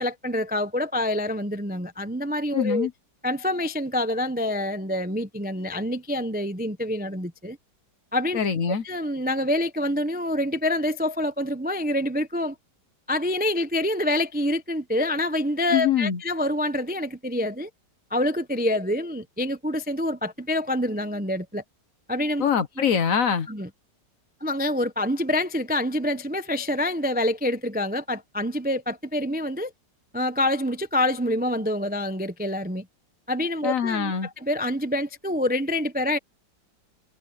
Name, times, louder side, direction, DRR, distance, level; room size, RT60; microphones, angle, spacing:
voice 1, 0.0-2.9 3.2-7.6 8.1-8.4 8.8-12.6 13.1-17.7 18.1-21.6 22.1-22.4 23.5-23.7 24.4-29.7 30.1-32.9 33.3-36.2, left 1 dB, 10° right, 0.5 m, -26 dB
voice 2, 2.5-2.9 8.3-8.8 15.7-16.2 22.4-23.5 33.6-34.3, left 7 dB, 55° left, 1.2 m, -23 dB
omnidirectional pair, 2.0 m